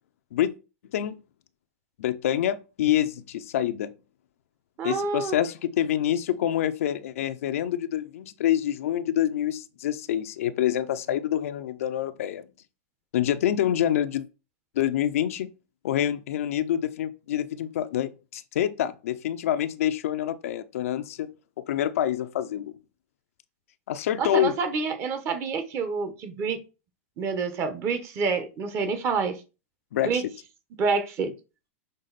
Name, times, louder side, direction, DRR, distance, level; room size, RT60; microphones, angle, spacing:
voice 1, 2.0-3.9 4.8-12.5 13.1-14.2 14.8-15.5 15.8-21.3 21.6-22.7 23.9-24.5 29.9-30.2, left 11 dB, 75° left, 0.6 m, -26 dB
voice 2, 4.8-5.4 24.2-26.6 27.2-29.4 30.0-30.2 30.8-31.3, right 5 dB, 35° right, 1.3 m, -27 dB
6.6 x 3.7 x 4.1 m
supercardioid pair, 135°, 8 cm